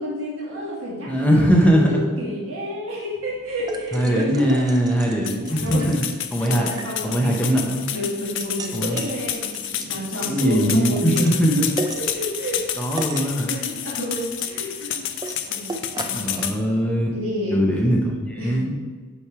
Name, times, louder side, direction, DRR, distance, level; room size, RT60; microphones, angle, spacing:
voice 1, 0.0-4.7 5.5-5.9 6.4-11.7 11.9-12.8 13.1-15.1 15.5-16.3 17.1-17.6 18.2-18.6, equal, 65° right, -6 dB, 1.7 m, -30 dB
voice 2, 1.1-2.0 3.9-6.0 6.3-6.7 7.0-7.9 8.7-9.0 9.8-10.0 10.2-11.7 12.8-13.6 16.1-17.2 17.5-18.7, equal, 5° left, -1 dB, 0.8 m, -21 dB
sound 1, 3.1-16.4, right 2 dB, 15° right, 0.4 m, -38 dB
sound 2, 5.3-16.6, left 10 dB, 55° left, 0.4 m, -30 dB
8.6 x 3.2 x 4.8 m, 1.5 s
head